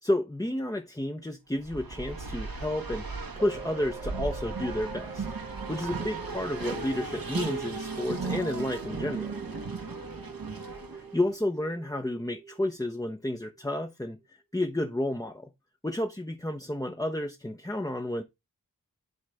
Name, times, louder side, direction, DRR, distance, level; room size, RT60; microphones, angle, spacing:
voice 1, 0.0-3.1 3.4-5.3 5.7-9.3 10.9-14.2 14.5-15.5 15.8-18.2, left 1 dB, 10° left, 0.7 m, -31 dB
Race car auto racing, 1.6-11.2, right 4 dB, 85° right, 1.5 m, -36 dB
sound 1, 3.4-13.8 14.2-14.3, right 3 dB, 15° right, 0.9 m, -45 dB
10.5 x 4.0 x 3.4 m
wide cardioid pair, 55°, 34 cm